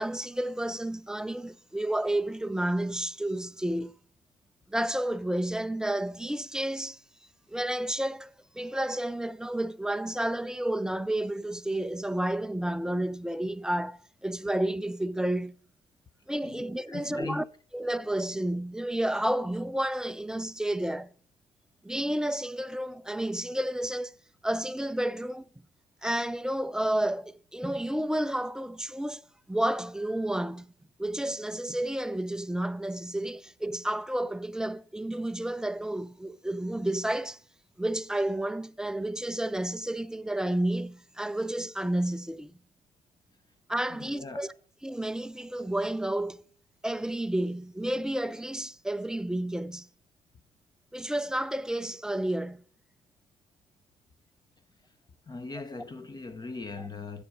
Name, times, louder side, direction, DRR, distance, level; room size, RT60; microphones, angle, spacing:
voice 1, 0.0-3.9 4.7-7.0 7.5-15.6 16.3-17.4 17.7-21.1 21.8-24.1 24.4-25.4 26.0-29.2 29.5-30.7 31.0-37.4 37.8-42.5 43.7-44.5 44.8-46.4 46.8-49.9 50.9-52.6, right 1 dB, 5° right, 0.3 m, -31 dB
voice 2, 16.9-17.5 44.0-44.5 55.3-57.2, left 3 dB, 25° left, 0.8 m, -39 dB
8.1 x 7.3 x 5.1 m
cardioid pair, 110°, 17 cm